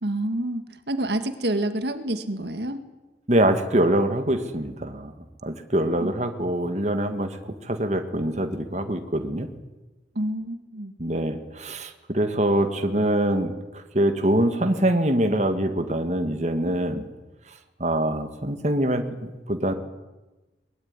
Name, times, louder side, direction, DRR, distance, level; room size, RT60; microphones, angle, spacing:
voice 1, 0.0-2.9 6.0-6.1 10.2-10.9, right 1 dB, 70° right, 9 dB, 1.8 m, -28 dB
voice 2, 3.3-5.1 5.4-7.4 7.6-9.5 11.0-17.0 17.8-19.7, right 1 dB, 40° right, 7 dB, 1.8 m, -24 dB
21.5 x 21.0 x 9.7 m, 1.1 s
head